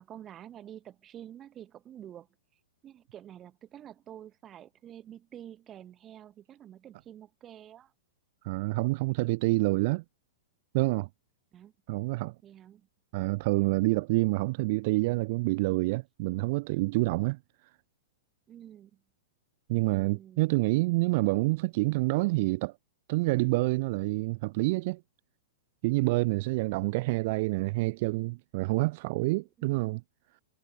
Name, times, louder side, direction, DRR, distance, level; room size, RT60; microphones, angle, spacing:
voice 1, 0.0-7.9 11.5-11.7 12.4-12.9 18.5-19.0 19.9-20.5, right 11 dB, 20° right, 2.9 m, -49 dB
voice 2, 8.4-10.0 10.7-11.1 11.9-12.3 13.1-17.4 19.7-22.7 23.1-25.0 25.8-30.0, right 23 dB, 40° right, 0.4 m, -27 dB
supercardioid pair, 165°, 0 cm